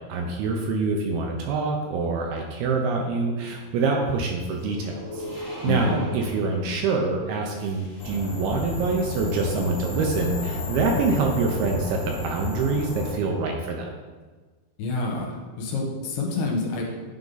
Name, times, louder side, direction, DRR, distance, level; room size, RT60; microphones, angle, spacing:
voice 1, 0.1-13.9, right 4 dB, 80° right, 1 dB, 2.4 m, -25 dB
sound 1, 4.5-8.5, equal, 35° right, 0.6 m, -39 dB
voice 2, 5.7-6.0 14.8-16.8, left 3 dB, 75° left, -1 dB, 2.9 m, -28 dB
sound 2, 8.0-13.1, left 3 dB, 50° left, 2.3 m, -32 dB
10.5 x 3.6 x 3.9 m, 1.4 s
omnidirectional pair, 4.9 m